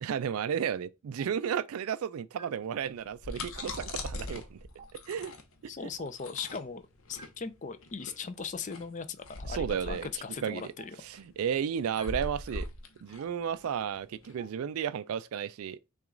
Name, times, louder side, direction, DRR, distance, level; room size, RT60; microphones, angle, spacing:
voice 1, 0.0-4.6 5.1-5.3 9.5-10.1 10.4-10.7 11.0-12.7 13.0-15.8, right 8 dB, 80° right, 0.3 m, -33 dB
Stream, 1.2-1.3 2.4-2.5 3.6-3.7 4.8-4.9 6.0-6.1 7.2-7.3 8.4-8.5 9.6-9.7 10.8-10.9 12.0-12.1 13.2-13.3 14.4-14.5, right 4 dB, 25° right, 0.7 m, -50 dB
sound 1, 2.9-14.3, left 2 dB, 70° left, 0.8 m, -41 dB
voice 2, 5.7-6.8 7.1-11.0, left 5 dB, 35° left, 0.4 m, -39 dB
5.9 x 2.4 x 3.8 m
head